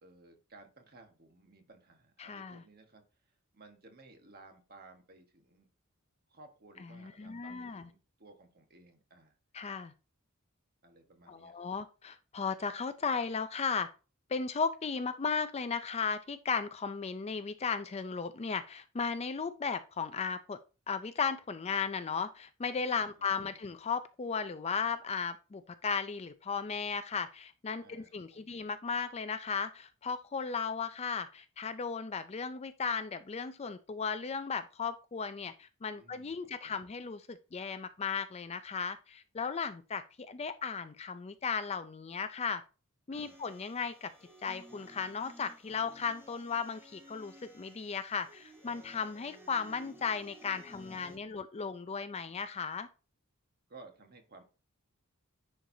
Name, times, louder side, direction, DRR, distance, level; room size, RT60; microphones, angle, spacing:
voice 1, 0.0-3.0 3.3-5.7 6.3-9.4 10.8-11.7 22.9-23.1 23.4-23.6 27.8-28.5 35.9-36.8 43.1-43.4 50.7-51.4 53.7-54.4, right 3 dB, 45° right, 4 dB, 1.4 m, -57 dB
voice 2, 2.2-2.6 6.8-7.9 9.5-9.9 11.3-13.9 14.3-20.6 20.9-42.6 43.1-44.1 44.4-52.9, left 5 dB, 30° left, 11 dB, 0.4 m, -36 dB
sound 1, 43.1-51.2, equal, 10° right, 2.6 m, -56 dB
10.0 x 4.5 x 2.7 m, 0.32 s
head